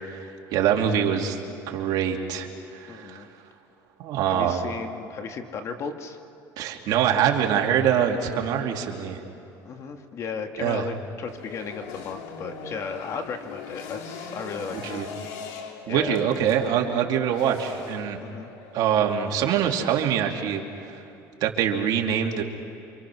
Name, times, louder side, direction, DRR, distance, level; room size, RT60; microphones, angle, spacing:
voice 1, 0.1-1.4 1.7-2.5 2.7-3.2 4.0-4.7 6.6-9.2 10.6-10.9 14.7-15.1 15.9-18.2 18.7-21.0 21.4-22.4, right 9 dB, 65° right, 1 dB, 2.9 m, -24 dB
voice 2, 2.9-3.3 4.3-6.2 9.6-15.0 15.9-16.2 18.2-18.5, left 5 dB, 45° left, 6 dB, 2.0 m, -35 dB
sound 1, 11.3-19.3, left 5 dB, 85° left, 3.3 m, -40 dB
28.5 x 26.0 x 6.3 m, 2.9 s
cardioid pair, 125°, 7 cm